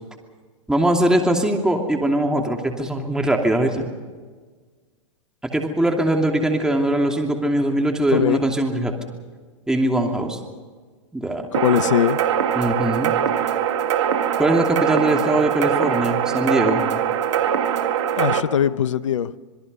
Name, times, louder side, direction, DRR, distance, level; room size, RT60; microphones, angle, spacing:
voice 1, 0.7-3.9 5.5-8.9 9.7-10.4 11.1-11.5 12.5-13.1 14.4-16.8, right 1 dB, 5° right, 2.8 m, -21 dB
voice 2, 8.1-8.4 11.5-12.2 18.2-19.3, left 9 dB, 80° left, 0.8 m, -20 dB
sound 1, 11.5-18.4, right 9 dB, 65° right, 2.0 m, -22 dB
27.0 x 22.0 x 5.5 m
hypercardioid pair, 110°, 16 cm